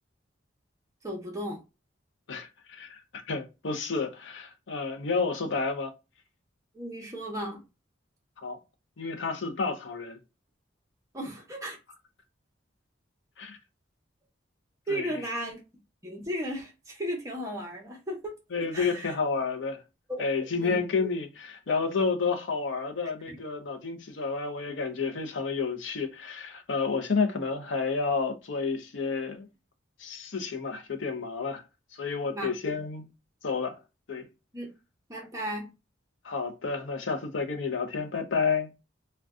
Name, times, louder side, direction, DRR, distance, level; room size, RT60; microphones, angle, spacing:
voice 1, 1.0-1.6 6.7-7.6 11.1-11.8 14.9-15.6 16.0-18.3 18.7-19.1 20.1-20.2 20.6-20.8 23.3-23.4 32.3-32.5 34.5-34.7 35.1-35.7, equal, 15° right, 0.7 m, -35 dB
voice 2, 2.3-5.9 8.4-8.6 9.0-10.2 13.4-13.6 14.9-15.1 18.5-19.8 20.2-29.5 30.0-31.6 31.9-33.1 33.4-33.8 34.1-34.3 36.2-38.7, left 4 dB, 70° left, 0.6 m, -30 dB
2.5 x 2.2 x 3.5 m
head